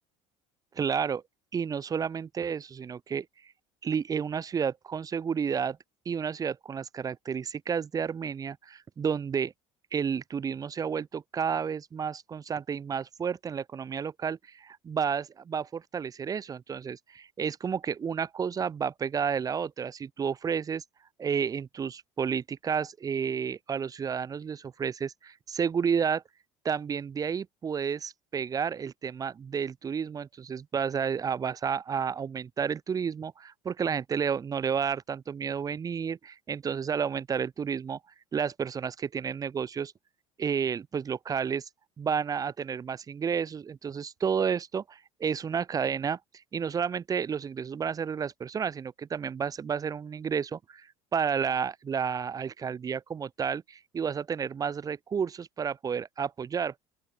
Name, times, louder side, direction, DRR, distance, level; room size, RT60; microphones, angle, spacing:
voice 1, 0.7-1.2 1.5-3.3 3.8-5.8 6.1-9.5 9.9-20.8 21.2-26.2 26.6-38.0 38.3-39.9 40.4-41.7 42.0-46.2 46.5-50.9 51.1-56.7, right 7 dB, 25° right, 2.3 m, -31 dB
open air
cardioid pair, 135°, 14 cm